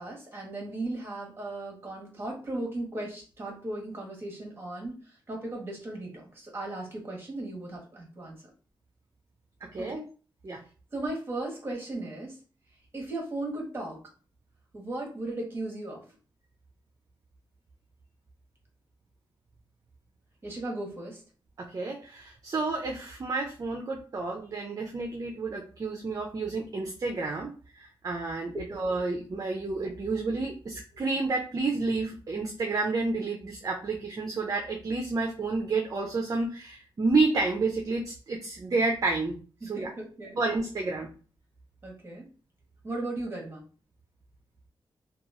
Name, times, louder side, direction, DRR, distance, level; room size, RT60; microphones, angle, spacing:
voice 1, 0.0-8.4 9.8-10.0 10.9-12.4 12.9-14.0 14.7-16.1 20.4-21.2 28.5-29.0 39.6-40.4 40.9-41.1 41.8-42.3 42.8-43.6, right 2 dB, 25° right, -1 dB, 1.3 m, -36 dB
voice 2, 21.6-39.4 39.7-39.9 40.4-41.1, right 3 dB, 40° right, 1 dB, 0.5 m, -30 dB
2.9 x 2.3 x 2.5 m, 0.37 s
cardioid pair, 85°, 9 cm